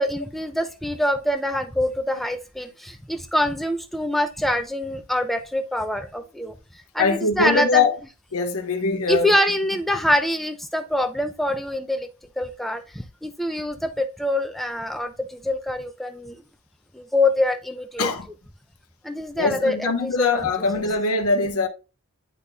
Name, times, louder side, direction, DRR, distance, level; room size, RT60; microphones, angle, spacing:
voice 1, 0.0-6.5 6.9-7.9 9.1-12.1 12.4-16.4 16.9-18.1 19.0-20.5, left 1 dB, ahead, 0.5 m, -25 dB
voice 2, 7.0-8.0 8.3-9.3 18.0-18.3 19.4-21.7, left 3 dB, 85° left, 1.0 m, -22 dB
10.5 x 4.0 x 2.3 m
head